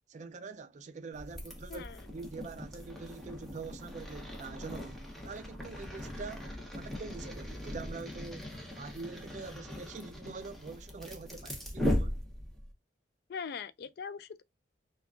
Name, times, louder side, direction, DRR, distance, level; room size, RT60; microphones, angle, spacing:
voice 1, 0.1-6.5 6.8-8.5 8.8-12.2, right 4 dB, 40° right, 0.3 m, -44 dB
sound 1, 1.1-12.7, left 1 dB, ahead, 0.6 m, -39 dB
voice 2, 1.7-2.1 13.3-14.4, left 6 dB, 55° left, 0.3 m, -41 dB
3.5 x 2.3 x 2.3 m
head